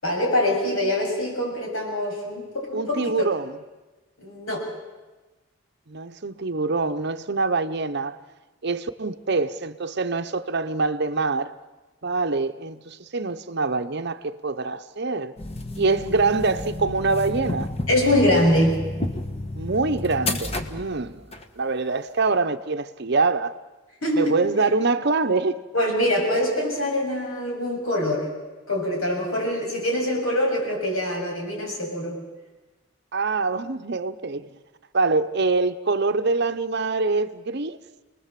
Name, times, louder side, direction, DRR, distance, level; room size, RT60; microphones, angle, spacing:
voice 1, 0.0-3.3 4.2-4.6 17.9-18.8 24.0-24.3 25.7-28.3 28.7-32.2, left 1 dB, 75° left, 7.1 m, -24 dB
voice 2, 2.7-3.6 5.9-8.2 8.6-11.5 12.0-15.3 15.8-17.7 19.6-21.2 21.6-23.6 24.1-25.6 33.1-34.5 34.9-37.8, right 3 dB, 50° right, 0.8 m, -24 dB
sound 1, 15.4-21.4, left 2 dB, 30° left, 1.5 m, -31 dB
29.5 x 20.0 x 7.6 m
head